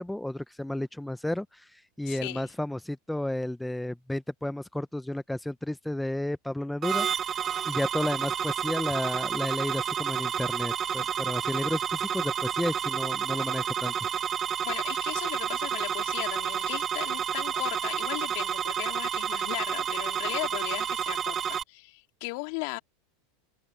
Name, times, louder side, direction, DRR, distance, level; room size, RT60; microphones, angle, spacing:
voice 1, 0.0-7.1 7.7-13.9, left 1 dB, 5° left, 0.8 m, -32 dB
voice 2, 2.1-2.5 14.6-22.8, left 29 dB, 60° left, 3.4 m, -37 dB
sound 1, 6.8-21.6, right 8 dB, 30° right, 1.3 m, -30 dB
hypercardioid pair, 95°, 0 cm